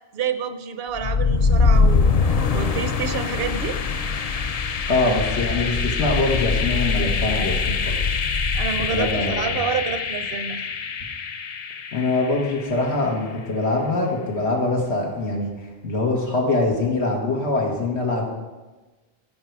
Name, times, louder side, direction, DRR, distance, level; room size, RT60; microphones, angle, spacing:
voice 1, 0.1-3.8 8.6-10.6, right 6 dB, 70° right, 11 dB, 0.8 m, -28 dB
sound 1, 0.9-12.8, left 4 dB, 50° left, 0.5 m, -23 dB
voice 2, 4.9-8.0 8.9-9.6 11.9-15.5 15.8-18.3, left 2 dB, 85° left, -1 dB, 1.9 m, -23 dB
15.5 x 5.3 x 4.7 m, 1.2 s
omnidirectional pair, 1.1 m